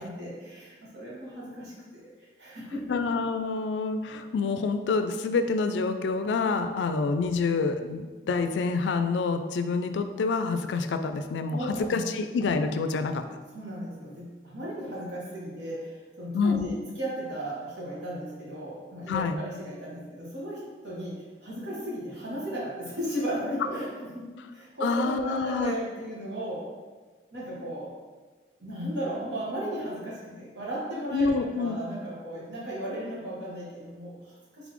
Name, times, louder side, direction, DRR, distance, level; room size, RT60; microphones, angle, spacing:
voice 1, 0.0-2.1 2.4-3.0 11.5-12.0 13.5-26.7 27.3-27.9 28.6-34.7, right 1 dB, 75° right, -6 dB, 1.4 m, -35 dB
voice 2, 2.9-11.6 11.9-13.2 16.3-16.7 19.1-19.4 24.8-25.7 31.1-31.8, left 4 dB, 80° left, 8 dB, 0.3 m, -27 dB
4.0 x 3.6 x 3.1 m, 1.4 s
head